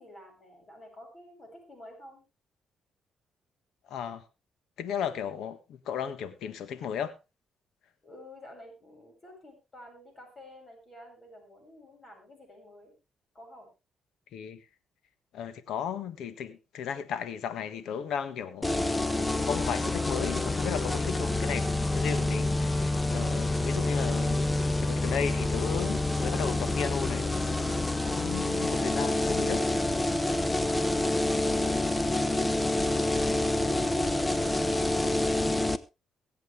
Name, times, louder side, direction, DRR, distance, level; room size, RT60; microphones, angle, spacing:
voice 1, 0.0-2.2 8.0-12.9 13.3-13.7 30.3-30.8 31.4-31.6 32.9-35.3, left 1 dB, 35° left, 7.7 m, -50 dB
voice 2, 3.8-4.2 4.8-7.1 14.3-14.6 15.3-18.7 19.3-21.6 21.9-27.3 28.1-29.7, left 8 dB, 80° left, 1.4 m, -35 dB
sound 1, 18.6-35.8, left 2 dB, 15° left, 0.9 m, -27 dB
23.0 x 7.9 x 3.4 m
cardioid pair, 90°, 0 cm